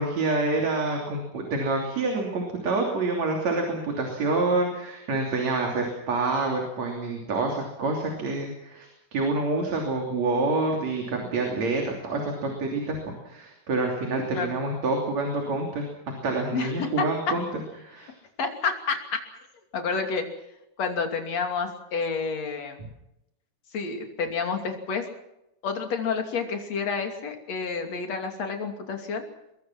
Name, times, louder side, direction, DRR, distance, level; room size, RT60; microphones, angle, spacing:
voice 1, 0.0-17.4 17.8-18.1, right 3 dB, 60° right, 1 dB, 4.3 m, -27 dB
voice 2, 16.5-17.3 18.4-19.2 19.7-20.3 20.8-22.8 23.7-25.1 25.6-29.2, left 5 dB, 60° left, 4 dB, 4.0 m, -29 dB
23.0 x 22.0 x 6.0 m, 0.86 s
omnidirectional pair, 3.5 m